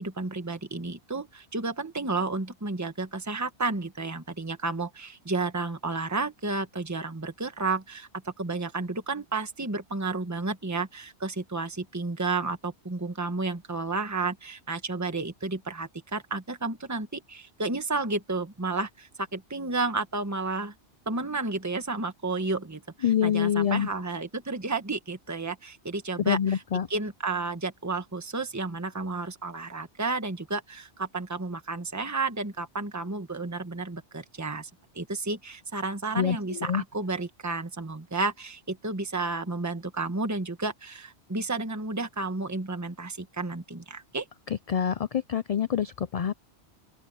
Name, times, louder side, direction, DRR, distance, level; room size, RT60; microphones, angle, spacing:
voice 1, 0.0-20.7 21.1-26.6 26.9-34.7 34.9-44.3, right 3 dB, 15° right, 1.4 m, -32 dB
voice 2, 23.0-23.9 26.3-26.9 36.2-36.8 44.7-46.3, left 8 dB, 55° left, 0.4 m, -26 dB
open air
omnidirectional pair, 1.1 m